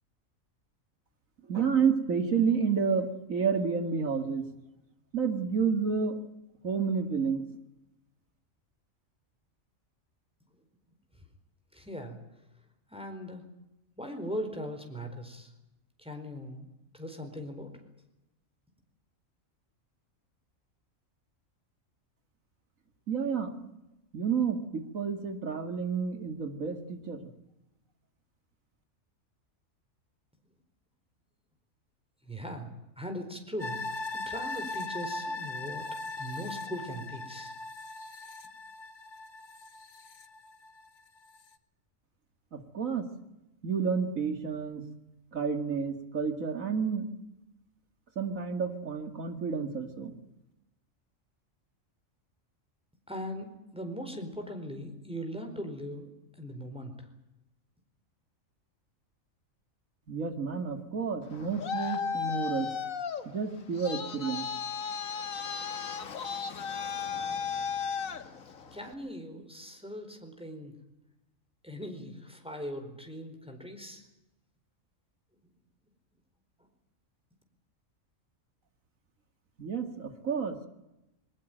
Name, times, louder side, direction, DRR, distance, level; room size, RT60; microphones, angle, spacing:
voice 1, 1.5-4.5 5.1-6.2 6.6-7.4 23.1-23.7 24.1-27.3 42.5-43.1 43.6-44.8 45.3-47.1 48.2-50.2 60.1-62.7 63.3-64.4 79.6-80.7, right 6 dB, 80° right, 7 dB, 2.6 m, -30 dB
voice 2, 11.7-12.2 12.9-13.5 14.0-15.5 16.0-17.8 32.2-32.7 33.0-35.9 36.2-37.5 53.1-57.1 68.7-70.7 71.6-74.0, equal, 5° right, 4 dB, 4.4 m, -40 dB
sound 1, 33.6-40.9 41.3-41.4, left 2 dB, 65° left, 1.7 m, -39 dB
Traffic noise roadway noise, 61.2-68.9, left 6 dB, 80° left, 1.9 m, -35 dB
21.5 x 20.0 x 9.2 m, 0.90 s
omnidirectional pair, 1.4 m